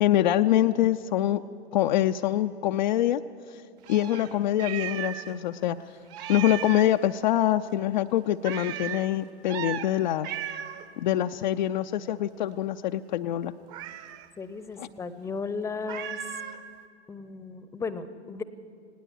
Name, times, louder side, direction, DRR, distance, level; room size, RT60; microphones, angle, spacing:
voice 1, 0.0-1.4 1.7-3.2 3.5-3.6 3.9-5.8 6.3-10.3 11.0-13.5 14.8-14.9, left 12 dB, 45° left, 7 dB, 0.5 m, -25 dB
Meow, 3.8-5.4 5.6-5.7 6.1-7.0 8.4-9.0 9.5-9.9 10.2-10.9 13.7-14.3 15.9-16.6, right 11 dB, 35° right, 1.1 m, -36 dB
voice 2, 14.4-16.2 17.1-18.4, left 4 dB, 10° left, 14 dB, 0.7 m, -35 dB
19.5 x 18.0 x 8.1 m, 2.3 s
figure-of-eight pair, 95°, 33 cm